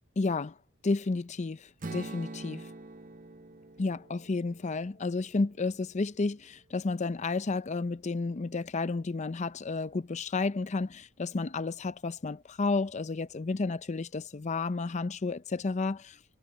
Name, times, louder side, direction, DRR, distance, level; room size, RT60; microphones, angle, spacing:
voice 1, 0.2-0.5 0.8-2.6 3.8-16.2, left 3 dB, 35° left, 0.5 m, -31 dB
Strum, 1.8-6.0, right 2 dB, 40° right, 0.8 m, -45 dB
head